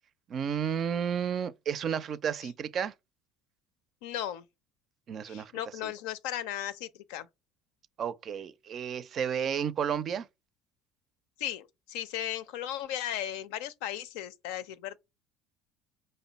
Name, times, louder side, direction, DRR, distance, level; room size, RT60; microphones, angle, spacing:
voice 1, 0.3-2.9 5.1-5.5 5.8-5.9 8.0-10.3, right 8 dB, 50° right, 0.4 m, -32 dB
voice 2, 4.0-4.4 5.2-7.3 11.4-15.0, left 11 dB, 80° left, 0.5 m, -36 dB
5.1 x 2.2 x 3.9 m
supercardioid pair, 85°, 0 cm